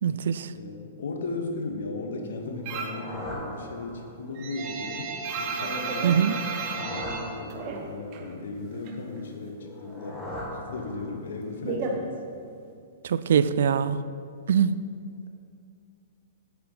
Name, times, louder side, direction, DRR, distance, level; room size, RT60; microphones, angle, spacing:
voice 1, 0.0-0.5 6.0-6.3 13.0-14.0 14.5-14.8, right 8 dB, 70° right, 15 dB, 0.3 m, -23 dB
voice 2, 0.5-6.5 6.7-10.2 10.7-12.2 13.3-13.8, left 3 dB, 75° left, 4 dB, 1.1 m, -36 dB
sound 1, 2.5-4.4 6.3-8.1 9.6-11.4, left 1 dB, 10° left, 1.7 m, -39 dB
sound 2, 2.7-3.1 3.4-8.3 8.6-9.6 9.9-12.7, right 4 dB, 40° right, 1.0 m, -33 dB
8.5 x 5.8 x 4.0 m, 2.3 s
hypercardioid pair, 125°, 0 cm